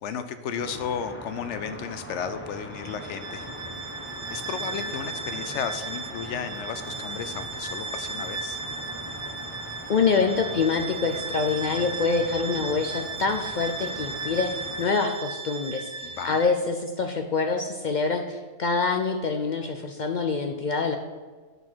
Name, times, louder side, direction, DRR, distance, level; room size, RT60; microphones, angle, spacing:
voice 1, 0.0-3.5 4.3-8.6 16.0-16.4, left 7 dB, 80° left, 10 dB, 0.9 m, -34 dB
sound 1, 0.6-14.9, equal, 10° left, 0.7 m, -41 dB
Bowed string instrument, 2.7-16.6, right 4 dB, 65° right, 1.0 m, -36 dB
voice 2, 9.9-21.0, left 4 dB, 55° left, 5 dB, 0.5 m, -26 dB
9.4 x 4.0 x 6.1 m, 1.4 s
omnidirectional pair, 1.2 m